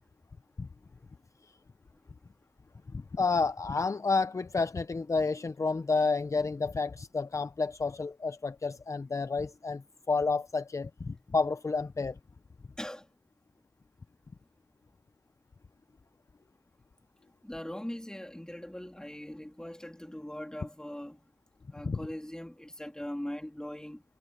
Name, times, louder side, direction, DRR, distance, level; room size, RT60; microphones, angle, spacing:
voice 1, 2.9-12.2 21.9-22.0, left 4 dB, 45° left, 0.5 m, -30 dB
voice 2, 17.4-21.2 21.7-24.0, left 1 dB, 10° left, 3.2 m, -40 dB
wide cardioid pair, 80°, 7 cm